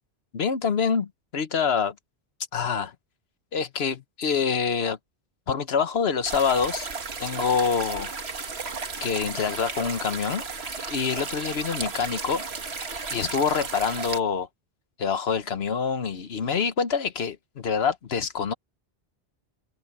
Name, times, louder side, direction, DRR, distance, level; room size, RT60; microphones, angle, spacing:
voice 1, 0.3-1.9 2.5-2.9 3.5-5.0 5.5-6.9 7.2-8.1 9.0-10.4 10.8-12.4 13.1-14.5 15.0-18.5, left 6 dB, 65° left, 1.3 m, -26 dB
sound 1, 6.2-14.2, right 4 dB, 65° right, 1.9 m, -34 dB
omnidirectional pair, 1.1 m